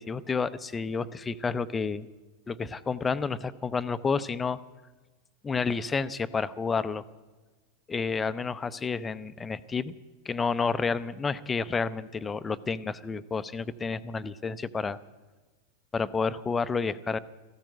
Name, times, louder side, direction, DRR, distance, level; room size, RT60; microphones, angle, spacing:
voice 1, 0.0-2.1 2.5-4.6 5.4-7.0 7.9-9.9 10.3-15.0 15.9-17.2, left 5 dB, 15° left, 15 dB, 0.6 m, -30 dB
14.5 x 13.5 x 7.4 m, 1.2 s
figure-of-eight pair, 90°, 0 cm